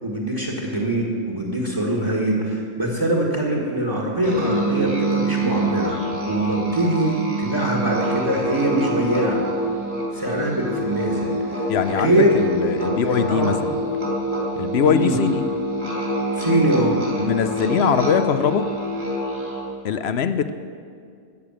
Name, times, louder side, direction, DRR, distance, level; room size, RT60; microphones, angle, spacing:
voice 1, 0.0-9.5 10.1-12.4 12.8-13.5 14.8-15.2 16.3-17.0, right 1 dB, 20° right, -2 dB, 1.6 m, -23 dB
Musical instrument, 4.2-19.8, right 1 dB, 60° right, 3.1 m, -26 dB
voice 2, 11.7-13.7 14.6-15.4 17.2-18.7 19.8-20.5, left 7 dB, 60° left, 11 dB, 0.7 m, -22 dB
14.0 x 6.7 x 8.7 m, 2.2 s
omnidirectional pair, 1.5 m